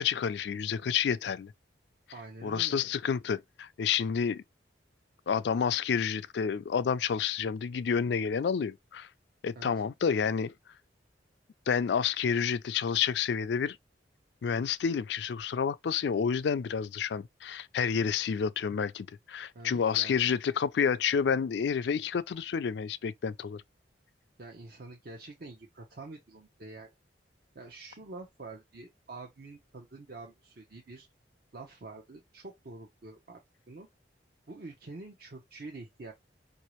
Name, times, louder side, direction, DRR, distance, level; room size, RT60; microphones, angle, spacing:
voice 1, 0.0-1.5 2.4-4.4 5.3-9.1 9.4-10.5 11.7-13.8 14.4-23.6, left 7 dB, 65° left, 0.4 m, -29 dB
voice 2, 2.1-2.8 9.6-9.8 19.5-20.2 24.4-26.9 27.5-31.1 31.5-33.4 33.7-33.9 34.5-36.1, right 3 dB, 55° right, 0.7 m, -46 dB
4.8 x 2.7 x 3.0 m
head